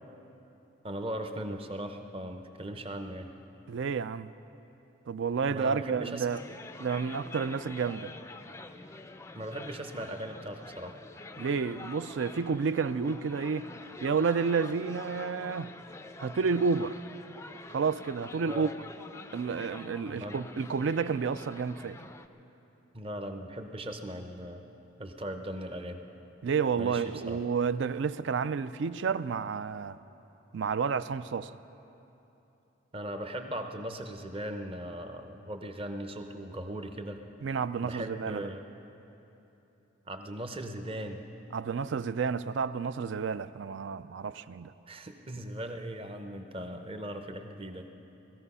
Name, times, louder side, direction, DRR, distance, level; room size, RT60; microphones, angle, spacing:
voice 1, 0.8-3.3 5.5-6.3 9.3-11.0 18.5-18.8 20.1-20.4 22.9-24.6 25.0-26.0 26.8-27.4 32.9-37.2 37.8-38.7 40.1-41.2 44.9-48.0, right 1 dB, 25° right, 6 dB, 0.7 m, -39 dB
voice 2, 3.7-4.3 5.1-6.4 6.8-8.1 11.4-13.7 14.0-15.7 16.2-17.0 17.7-18.7 19.3-22.0 26.4-30.0 30.5-31.5 37.4-38.5 41.5-44.7, right 5 dB, 60° right, 15 dB, 0.4 m, -30 dB
sound 1, 6.3-22.3, left 2 dB, 15° left, 0.4 m, -46 dB
18.5 x 14.0 x 5.5 m, 3.0 s
head